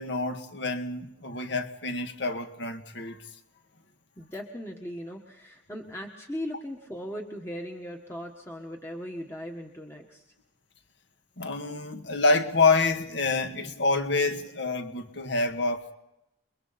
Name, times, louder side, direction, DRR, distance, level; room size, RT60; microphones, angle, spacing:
voice 1, 0.0-3.2 11.4-15.9, left 3 dB, 60° left, 1.8 m, -27 dB
voice 2, 4.2-10.3, equal, 15° left, 1.5 m, -38 dB
29.5 x 23.0 x 4.2 m
head